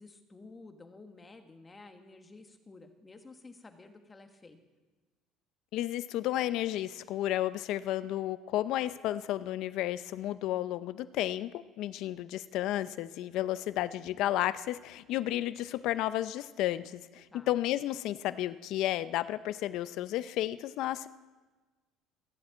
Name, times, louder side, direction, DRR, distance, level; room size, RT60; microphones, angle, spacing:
voice 1, 0.0-4.6 17.3-17.5, left 3 dB, 20° left, 6 dB, 1.4 m, -52 dB
voice 2, 5.7-21.1, left 13 dB, 70° left, 14 dB, 0.5 m, -32 dB
15.0 x 7.5 x 8.7 m, 1.3 s
cardioid pair, 120°, 0 cm